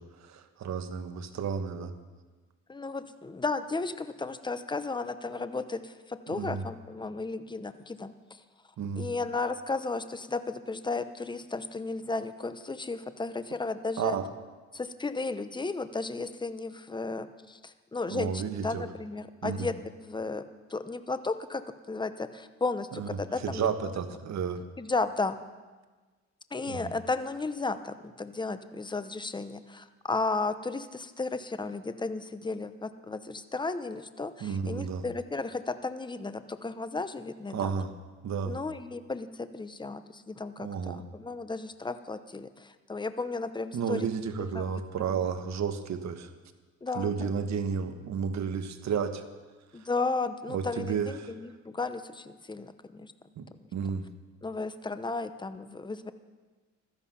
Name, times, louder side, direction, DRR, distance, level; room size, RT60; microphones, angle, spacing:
voice 1, 0.0-1.9 6.3-6.7 8.8-9.1 14.0-14.3 18.1-18.9 19.4-19.7 22.9-24.6 26.7-26.9 34.4-35.0 37.5-37.9 38.2-38.6 40.6-41.0 43.7-46.3 46.9-49.2 50.5-51.3 53.4-54.1, right 6 dB, 65° right, 8 dB, 1.4 m, -32 dB
voice 2, 2.7-8.1 9.0-14.2 14.7-19.7 20.0-20.4 20.7-23.7 24.8-25.3 26.5-37.7 38.4-44.1 44.4-44.6 45.1-45.2 46.8-47.3 49.7-53.1 53.6-53.7 54.4-56.1, left 3 dB, 15° left, 11 dB, 0.9 m, -34 dB
15.5 x 13.5 x 5.8 m, 1.3 s
cardioid pair, 90°, 30 cm